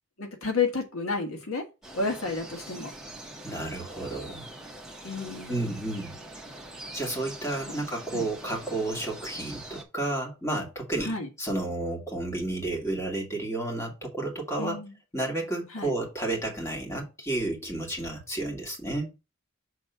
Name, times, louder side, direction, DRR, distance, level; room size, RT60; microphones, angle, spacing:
voice 1, 0.2-1.6 1.9-2.9 5.0-5.6 7.7-7.8 8.1-8.2 11.0-11.3 14.6-14.9 15.7-15.9, left 4 dB, 75° left, 1.5 m, -31 dB
sound 1, 1.8-9.8, right 1 dB, 5° right, 1.2 m, -43 dB
voice 2, 3.4-4.5 5.5-6.2 6.9-14.8 15.1-19.1, right 2 dB, 15° left, 2.2 m, -31 dB
6.6 x 3.6 x 5.5 m
head